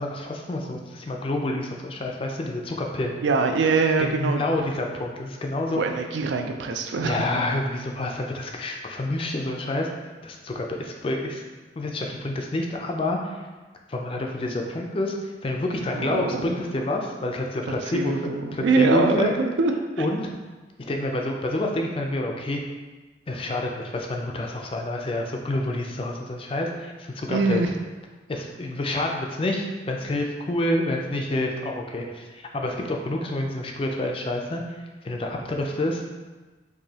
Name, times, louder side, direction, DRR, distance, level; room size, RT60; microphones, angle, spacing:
voice 1, 0.0-3.2 4.0-5.8 7.0-9.9 10.2-11.4 11.8-13.4 13.9-19.3 20.0-20.3 20.9-22.6 23.3-27.6 28.3-34.8 35.0-36.0, left 1 dB, 30° left, 1 dB, 0.3 m, -28 dB
voice 2, 3.2-4.4 5.7-7.2 15.9-16.6 17.7-19.7 20.0-20.1 27.3-27.7, right 3 dB, 75° right, 4 dB, 0.4 m, -23 dB
4.7 x 2.6 x 2.8 m, 1.3 s
head